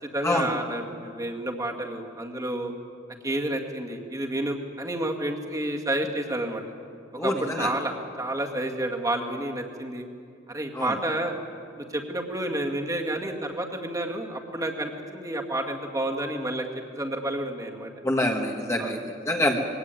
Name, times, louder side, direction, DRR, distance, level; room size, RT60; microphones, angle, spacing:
voice 1, 0.0-2.7 3.2-6.6 7.2-10.1 10.5-11.4 11.8-16.7 16.9-17.9 18.8-19.0, right 1 dB, 20° right, 1 dB, 2.1 m, -30 dB
voice 2, 7.2-7.7 10.8-10.9 18.0-19.0 19.3-19.6, left 1 dB, 15° left, 1 dB, 1.6 m, -25 dB
22.0 x 17.0 x 9.2 m, 2.4 s
head